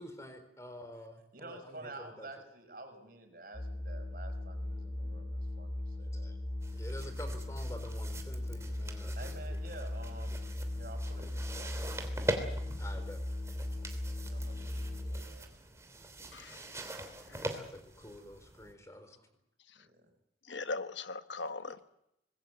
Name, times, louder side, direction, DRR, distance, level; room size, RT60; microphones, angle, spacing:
voice 1, 0.0-2.3 6.1-6.4 6.7-9.1 12.8-13.2 17.5-19.1, left 1 dB, 15° left, 8 dB, 4.0 m, -48 dB
voice 2, 1.3-6.3 9.2-10.4 10.7-12.3 14.2-15.7 19.8-20.1, right 2 dB, 50° right, 6 dB, 5.4 m, -50 dB
sound 1, 3.5-15.2, left 1 dB, 45° left, 5.9 m, -38 dB
sound 2, 6.6-18.7, right 1 dB, 15° right, 3.0 m, -43 dB
voice 3, 16.3-16.8 17.3-17.5 20.5-21.8, left 3 dB, 85° left, 11 dB, 1.3 m, -40 dB
25.5 x 20.5 x 7.9 m, 0.84 s
head